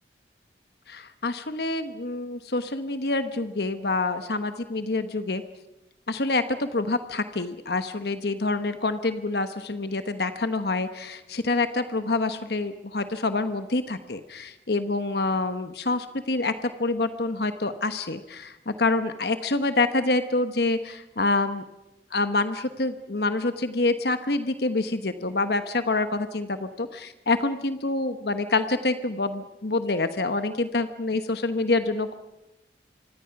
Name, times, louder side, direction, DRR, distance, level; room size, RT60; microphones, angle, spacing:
voice 1, 0.9-5.4 6.1-21.6 22.1-32.1, left 2 dB, 65° left, 10 dB, 1.1 m, -27 dB
26.5 x 24.5 x 5.9 m, 0.94 s
head